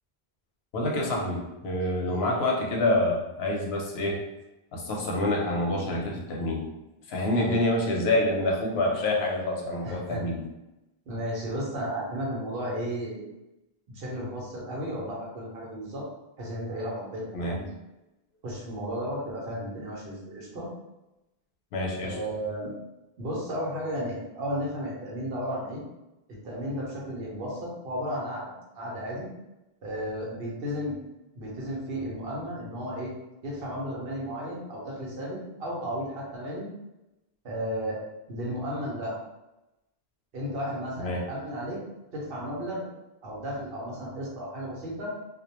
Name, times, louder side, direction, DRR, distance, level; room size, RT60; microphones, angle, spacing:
voice 1, 0.7-4.2 4.7-6.7 7.1-10.4 17.3-17.6 21.7-22.1 41.0-41.2, left 1 dB, 90° left, -1 dB, 0.9 m, -27 dB
voice 2, 9.8-10.2 11.1-13.2 13.9-16.0 16.4-17.7 18.4-20.7 22.0-22.7 23.2-25.8 26.3-29.3 29.8-31.0 31.3-33.1 33.4-36.7 37.4-38.0 38.3-39.2 40.3-41.8 42.1-42.9 43.2-45.1, equal, 70° right, -4 dB, 0.9 m, -34 dB
2.3 x 2.1 x 2.9 m, 0.96 s
omnidirectional pair, 1.0 m